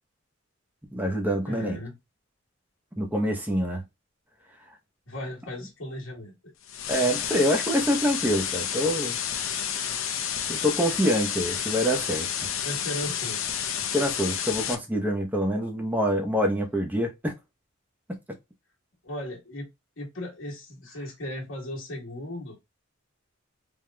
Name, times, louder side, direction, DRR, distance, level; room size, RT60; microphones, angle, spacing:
voice 1, 0.9-1.8 3.0-3.8 6.9-9.2 9.7-9.9 10.5-12.3 13.9-17.3 18.1-18.2, equal, 10° right, 0.8 m, -26 dB
voice 2, 1.4-2.0 5.1-6.5 12.6-13.4 19.0-19.7 20.0-22.6, left 1 dB, 65° left, 1.3 m, -36 dB
sound 1, 6.7-14.7, left 8 dB, 80° left, 0.7 m, -30 dB
3.5 x 3.0 x 2.2 m
head